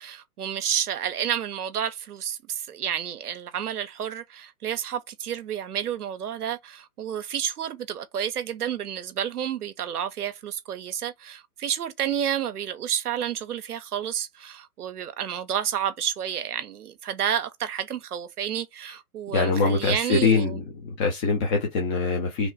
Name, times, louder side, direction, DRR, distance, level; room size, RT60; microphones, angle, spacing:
voice 1, 0.0-20.6, right 9 dB, 85° right, 0.6 m, -30 dB
voice 2, 19.3-22.5, left 4 dB, 20° left, 0.6 m, -23 dB
3.1 x 2.1 x 3.9 m
hypercardioid pair, 125°, 45 cm